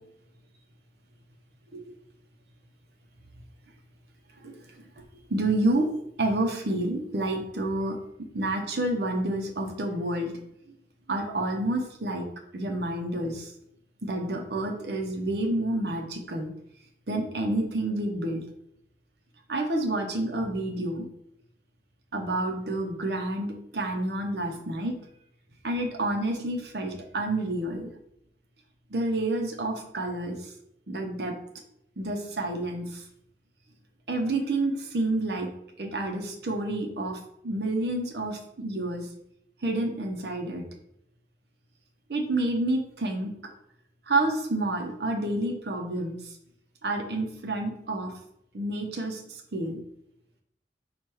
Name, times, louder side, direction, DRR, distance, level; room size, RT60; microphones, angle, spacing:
voice 1, 5.3-5.9 6.2-8.0 8.3-10.4 11.1-12.3 12.5-13.5 14.0-16.5 17.1-18.4 19.5-21.0 22.1-24.9 25.6-27.9 28.9-30.4 30.9-31.3 32.0-33.0 34.1-35.5 35.8-37.2 37.4-39.0 39.6-40.6 42.1-43.4 44.1-46.1 46.8-48.1 48.5-49.2 49.5-49.8, right 2 dB, 65° right, 3 dB, 0.7 m, -29 dB
4.5 x 2.4 x 4.7 m, 0.76 s
head